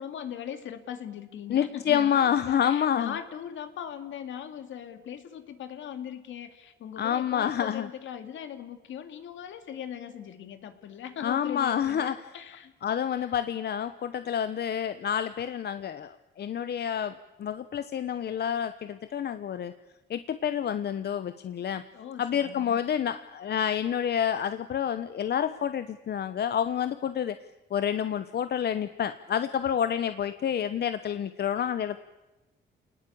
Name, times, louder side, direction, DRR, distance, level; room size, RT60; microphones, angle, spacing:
voice 1, 0.0-12.7 13.2-13.3 21.9-22.8, left 9 dB, 75° left, 8 dB, 2.4 m, -39 dB
voice 2, 1.5-3.1 7.0-7.9 11.2-12.2 12.8-19.7 20.1-21.8 22.2-27.4 27.7-32.0, left 9 dB, 55° left, 12 dB, 1.0 m, -28 dB
28.5 x 19.5 x 8.7 m, 1.1 s
cardioid pair, 90°, 20 cm